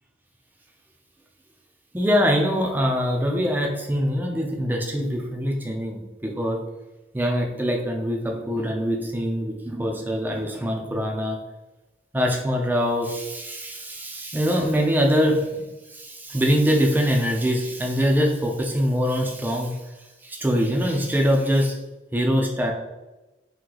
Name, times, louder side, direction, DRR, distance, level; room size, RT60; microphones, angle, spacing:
voice 1, 1.9-6.6 7.1-11.4 12.1-19.8 20.2-21.8 22.1-22.7, equal, 10° right, 1 dB, 0.4 m, -23 dB
2.9 x 2.7 x 3.8 m, 1.1 s
head